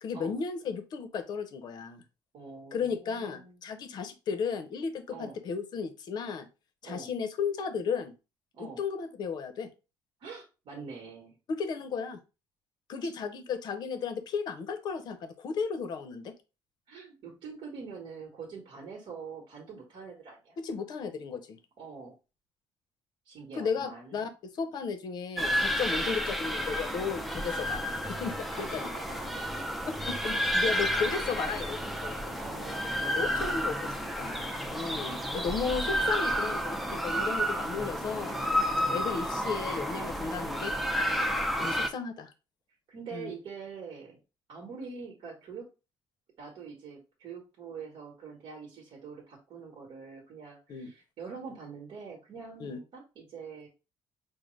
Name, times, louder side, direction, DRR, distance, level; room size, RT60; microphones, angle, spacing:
voice 1, 0.0-2.0 2.7-6.5 6.8-8.1 8.6-9.7 11.5-12.2 12.9-16.3 20.6-21.6 23.5-24.3 24.6-28.9 29.9-32.4 33.2-33.7 34.2-38.4 38.9-40.7 41.6-42.3 43.1-43.3 50.7-50.9 52.6-52.8, left 5 dB, 55° left, 9 dB, 0.6 m, -34 dB
voice 2, 2.3-3.6 5.1-5.4 6.8-7.1 8.5-8.8 10.2-11.4 16.9-20.6 21.8-22.2 23.2-24.3 25.9-26.1 28.5-29.5 32.3-34.0 35.2-35.6 38.7-39.1 40.2-40.5 42.9-44.2 44.5-45.7 46.4-53.7, right 5 dB, 60° right, -2 dB, 1.1 m, -45 dB
sound 1, 25.4-41.9, equal, ahead, 0.4 m, -31 dB
5.1 x 2.0 x 3.1 m, 0.30 s
cardioid pair, 155°, 9 cm